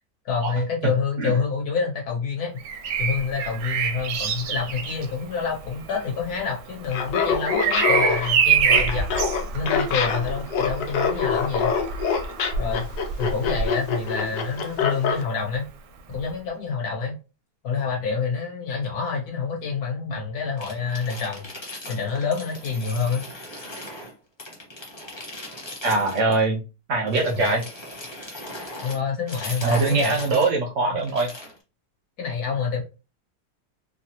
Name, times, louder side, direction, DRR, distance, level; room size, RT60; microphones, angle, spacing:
voice 1, 0.2-2.5 3.0-9.1 9.5-11.7 12.6-12.9 13.2-15.6 16.1-17.1 17.6-21.5 21.9-23.3 27.3-27.5 28.8-30.2 32.2-32.8, left 5 dB, 65° left, -1 dB, 1.4 m, -27 dB
Bird vocalization bird call bird song, 2.6-14.4 16.1-16.3, right 6 dB, 85° right, 1.2 m, -27 dB
Laughter, 6.8-15.2, left 6 dB, 90° left, 1.3 m, -25 dB
sound 1, 20.6-24.1 24.4-26.4 27.1-30.5 31.0-31.6, left 1 dB, 25° left, 0.6 m, -38 dB
voice 2, 25.8-26.6 26.9-27.6 29.6-31.3, right 3 dB, 65° right, 1 dB, 0.7 m, -22 dB
3.5 x 2.0 x 2.8 m, 0.31 s
omnidirectional pair, 1.8 m